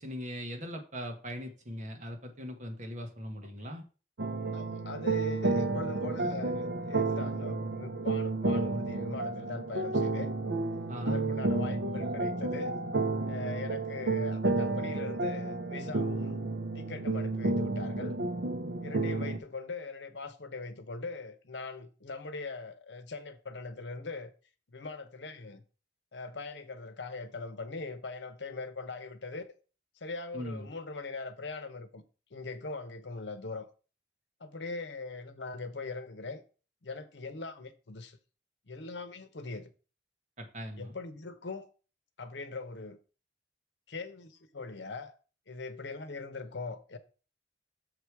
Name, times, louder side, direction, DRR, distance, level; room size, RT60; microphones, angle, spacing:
voice 1, 0.0-3.8 10.9-11.3 30.3-30.7 40.4-40.9, equal, 40° right, 1.3 m, -40 dB
sound 1, 4.2-19.4, right 3 dB, 80° right, 0.8 m, -31 dB
voice 2, 4.5-10.3 11.0-12.7 13.3-16.4 16.7-18.2 18.8-24.3 24.7-25.6 26.1-29.5 30.0-32.0 32.3-33.7 34.4-36.4 36.8-38.2 38.7-39.7 40.8-41.7 42.2-43.0 43.9-45.1 45.5-47.0, left 3 dB, 80° left, 0.9 m, -41 dB
6.6 x 4.9 x 4.7 m
head